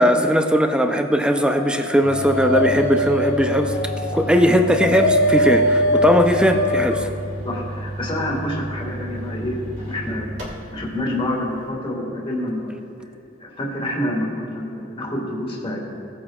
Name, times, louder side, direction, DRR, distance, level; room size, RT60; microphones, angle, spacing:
voice 1, 0.0-3.8 4.1-7.1, equal, 5° right, 5 dB, 0.5 m, -18 dB
Dog, 1.5-7.1, left 1 dB, 60° left, 0.6 m, -22 dB
sound 1, 2.0-10.9, right 1 dB, 65° right, 2.4 m, -32 dB
voice 2, 7.5-10.3 10.7-12.8 13.4-15.8, left 1 dB, 30° left, -2 dB, 1.8 m, -27 dB
17.0 x 8.5 x 2.4 m, 2.9 s
head